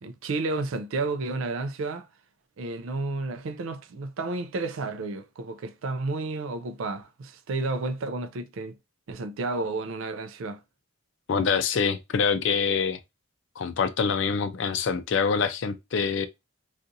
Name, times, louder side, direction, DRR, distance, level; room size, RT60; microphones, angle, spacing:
voice 1, 0.0-2.1 2.6-8.8 9.1-10.6, right 3 dB, 70° right, 0.4 m, -31 dB
voice 2, 11.3-13.0 13.6-16.3, left 6 dB, 60° left, 0.4 m, -25 dB
2.7 x 2.4 x 3.7 m
head